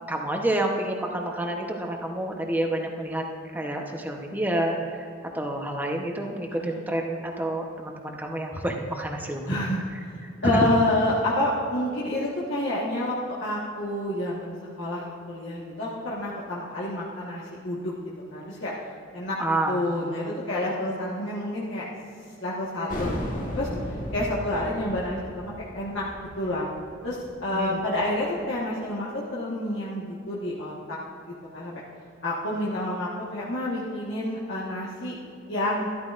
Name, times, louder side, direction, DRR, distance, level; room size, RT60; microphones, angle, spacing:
voice 1, 0.1-3.2 3.5-5.1 5.3-9.5 10.4-10.7 19.4-19.8 27.5-27.8, right 1 dB, 10° right, 1 dB, 0.9 m, -28 dB
voice 2, 9.5-9.8 10.1-17.9 18.3-18.7 19.1-19.4 19.7-21.9 22.4-23.7 24.1-26.0 26.4-26.7 27.0-31.0 31.3-31.8 32.2-35.2 35.5-35.9, left 1 dB, 65° left, -7 dB, 1.4 m, -29 dB
sound 1, 22.9-28.2, equal, 40° left, 1.7 m, -35 dB
13.0 x 13.0 x 2.5 m, 2.5 s
head